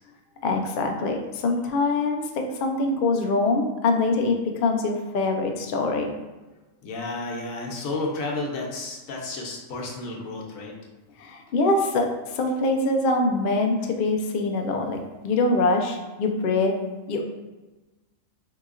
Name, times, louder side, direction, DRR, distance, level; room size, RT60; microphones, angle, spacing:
voice 1, 0.4-6.1 11.2-12.1 12.3-15.0 15.2-16.8 17.1-17.2, left 2 dB, 65° left, 3 dB, 0.5 m, -24 dB
voice 2, 6.8-10.7, left 2 dB, 90° left, -1 dB, 1.1 m, -32 dB
3.9 x 2.8 x 2.4 m, 1.2 s
omnidirectional pair, 1.4 m